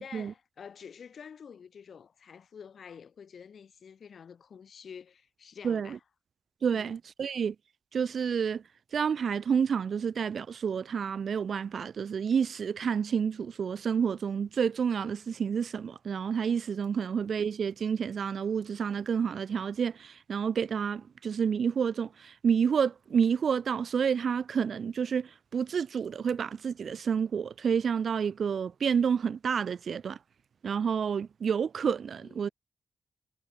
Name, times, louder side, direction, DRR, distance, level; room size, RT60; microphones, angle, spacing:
voice 1, 0.0-6.0 6.7-6.9 32.2-32.5, left 7 dB, 75° left, 3.0 m, -48 dB
voice 2, 5.6-6.0 6.6-7.6 7.9-8.6 8.9-30.2 30.6-32.5, right 7 dB, 75° right, 0.4 m, -29 dB
cardioid pair, 65°, 0 cm